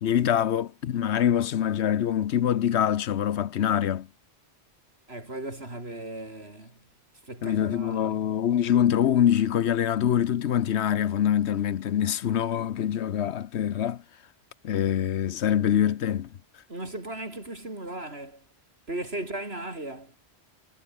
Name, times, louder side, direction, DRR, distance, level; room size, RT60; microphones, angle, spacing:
voice 1, 0.0-4.1 7.4-14.0 14.6-16.3, left 10 dB, 85° left, 1.1 m, -24 dB
voice 2, 5.1-6.8 7.2-8.2 16.7-18.4 18.9-20.2, right 1 dB, 70° right, 6.0 m, -37 dB
omnidirectional pair, 1.1 m